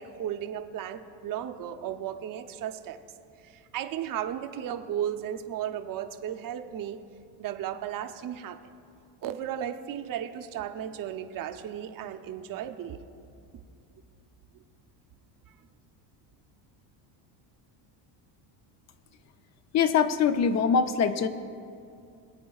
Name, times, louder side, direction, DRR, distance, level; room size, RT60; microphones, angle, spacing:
voice 1, 0.0-3.0 3.4-7.0 7.4-8.6 9.2-13.0 14.5-14.6, right 10 dB, 45° right, 8 dB, 0.7 m, -35 dB
voice 2, 19.7-21.3, left 6 dB, 35° left, 11 dB, 0.5 m, -23 dB
22.5 x 8.4 x 2.4 m, 2.4 s
supercardioid pair, 110°, 49 cm